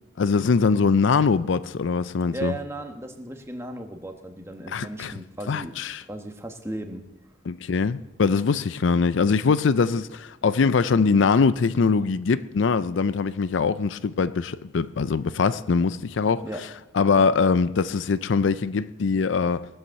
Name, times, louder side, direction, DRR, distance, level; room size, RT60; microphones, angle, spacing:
voice 1, 0.2-2.5 4.7-5.1 5.5-6.0 7.5-16.5 16.9-19.7, left 5 dB, 75° left, 0.5 m, -22 dB
voice 2, 2.3-5.7 6.0-7.0 16.4-16.6 17.2-17.3, right 1 dB, 15° right, 1.2 m, -35 dB
18.5 x 8.0 x 6.9 m
head